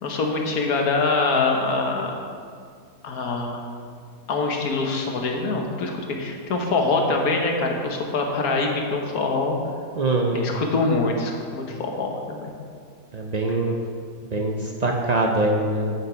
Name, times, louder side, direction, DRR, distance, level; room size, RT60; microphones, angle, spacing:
voice 1, 0.0-2.1 3.0-3.6 4.3-5.9 6.2-9.5 10.3-12.5, left 3 dB, 65° left, 1 dB, 1.6 m, -24 dB
voice 2, 10.0-10.6 13.1-13.7 14.2-15.9, right 2 dB, 80° right, 1 dB, 0.3 m, -23 dB
9.0 x 8.2 x 4.5 m, 2.1 s
omnidirectional pair, 1.7 m